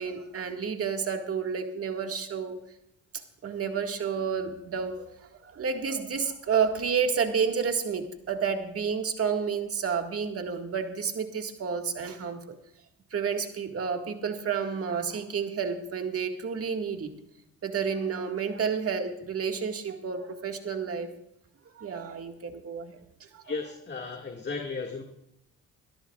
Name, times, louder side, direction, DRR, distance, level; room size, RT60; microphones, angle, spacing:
voice 1, 0.0-2.6 3.4-12.6 13.1-17.1 17.6-21.1 21.8-23.0 23.3-23.4, right 6 dB, 50° right, 5 dB, 1.9 m, -30 dB
voice 2, 23.4-25.0, left 4 dB, 35° left, 2 dB, 2.0 m, -35 dB
23.5 x 12.5 x 2.4 m, 0.80 s
cardioid pair, 90°, 30 cm